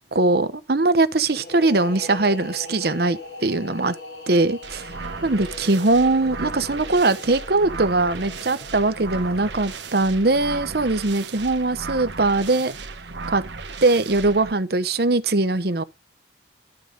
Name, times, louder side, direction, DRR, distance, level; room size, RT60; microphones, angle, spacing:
voice 1, 0.1-3.9 4.3-4.9 5.2-12.7 13.3-13.4 13.8-15.8, right 2 dB, 60° right, 0.9 m, -21 dB
sound 1, 1.3-10.8, left 3 dB, 75° left, 3.2 m, -41 dB
sound 2, 4.6-14.5, right 4 dB, 75° right, 1.3 m, -35 dB
11.5 x 4.9 x 5.2 m
head